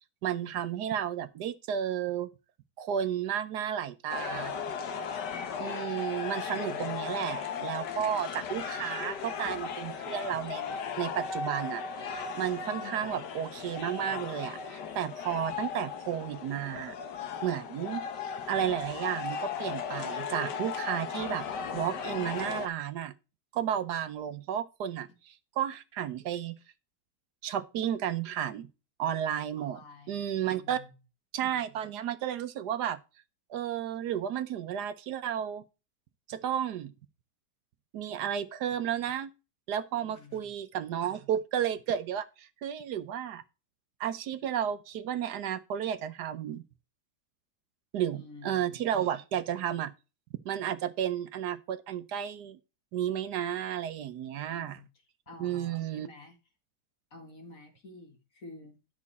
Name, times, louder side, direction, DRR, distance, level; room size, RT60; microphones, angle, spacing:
voice 1, 0.2-2.3 2.8-4.5 5.6-17.0 17.4-18.0 18.5-21.5 21.7-23.1 23.5-26.6 27.4-28.7 29.0-29.8 30.1-30.8 31.3-33.0 33.5-35.6 36.3-36.9 37.9-39.3 39.7-43.4 44.0-46.6 47.9-49.9 50.4-52.6 52.9-54.8 55.4-56.1, right 9 dB, 75° right, 1.3 m, -32 dB
sound 1, 4.1-22.7, left 6 dB, 80° left, 1.7 m, -36 dB
voice 2, 6.5-7.1 12.7-13.2 29.6-30.9 40.0-40.5 48.1-48.8 54.5-54.9 55.3-56.4 57.1-58.8, left 3 dB, 50° left, 2.4 m, -50 dB
10.5 x 5.9 x 4.2 m
omnidirectional pair, 1.8 m